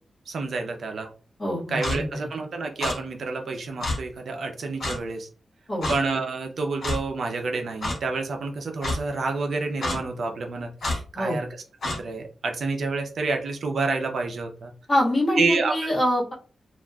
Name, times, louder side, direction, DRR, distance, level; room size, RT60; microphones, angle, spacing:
voice 1, 0.3-1.1 1.7-5.3 5.9-11.5 11.8-14.7 15.4-16.0, right 3 dB, 65° right, 4 dB, 0.5 m, -28 dB
voice 2, 1.4-1.8 5.7-5.9 11.1-11.4 14.9-16.3, left 1 dB, 30° left, -6 dB, 1.3 m, -24 dB
Clock, 1.8-2.0 2.8-3.0 3.8-4.0 4.8-5.0 5.8-6.0 6.8-7.0 7.8-8.0 8.8-9.0 9.8-10.0 10.8-11.0 11.8-12.0, left 2 dB, 60° left, 0.9 m, -27 dB
2.9 x 2.4 x 2.3 m, 0.36 s
wide cardioid pair, 145°, 0 cm